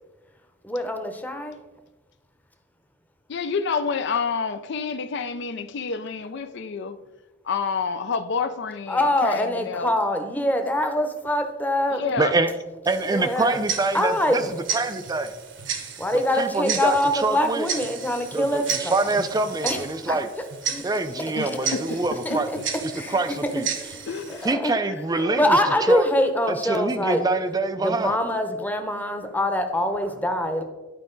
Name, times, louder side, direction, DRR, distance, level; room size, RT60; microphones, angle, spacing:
voice 1, 0.6-1.6 8.9-12.0 13.0-13.6 13.9-14.4 16.0-18.9 19.6-20.2 20.7-21.6 21.9-22.6 22.9-23.2 23.4-23.5 23.8-24.7 25.4-27.3 27.8-30.6, left 1 dB, 10° left, 0.8 m, -24 dB
voice 2, 3.3-7.0 7.4-9.9 11.9-12.4 21.4-22.0 24.1-24.5 24.8-25.8, left 5 dB, 65° left, 0.5 m, -29 dB
voice 3, 12.2-12.5 12.9-15.3 16.3-17.7 18.3-20.3 20.8-22.5 22.8-23.7 24.4-26.0 26.5-28.1, right 3 dB, 20° right, 0.3 m, -25 dB
Tick-tock, 12.9-24.5, right 7 dB, 70° right, 1.0 m, -34 dB
11.0 x 4.6 x 3.9 m
head